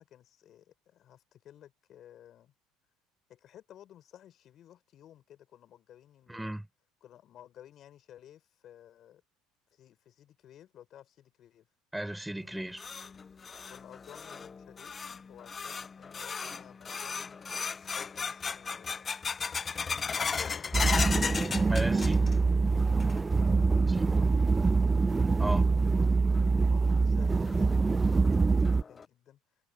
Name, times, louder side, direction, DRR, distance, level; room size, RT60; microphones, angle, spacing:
voice 1, 0.0-2.5 3.3-6.6 7.0-9.2 9.7-11.7 13.7-14.9 15.2-19.2 20.1-22.0 22.4-22.6 23.4-24.7 26.7-29.4, left 11 dB, 50° left, 6.7 m, -55 dB
voice 2, 6.3-6.7 11.9-12.9 21.7-22.2 23.9-24.1 25.4-25.7, right 1 dB, 5° right, 5.8 m, -35 dB
sound 1, 12.4-22.5 22.8-23.4 23.8-23.9 24.6-24.7 26.3-26.4 26.9-27.0 27.5-27.6 28.0-28.1 28.7-29.0, left 5 dB, 30° left, 0.8 m, -36 dB
sound 2, 20.7-28.8, right 4 dB, 20° right, 0.6 m, -25 dB
supercardioid pair, 90°, 0 cm